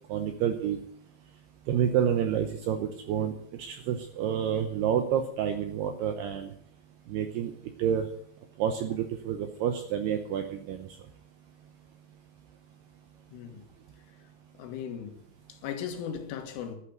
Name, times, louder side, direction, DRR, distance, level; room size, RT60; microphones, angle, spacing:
voice 1, 0.1-0.8 1.7-6.5 7.1-7.5 7.8-8.1 8.6-10.9, right 9 dB, 80° right, 2.4 m, -29 dB
voice 2, 13.3-13.7 14.6-15.2 15.5-16.8, left 8 dB, 80° left, 4.0 m, -37 dB
12.0 x 9.7 x 9.2 m
omnidirectional pair, 5.8 m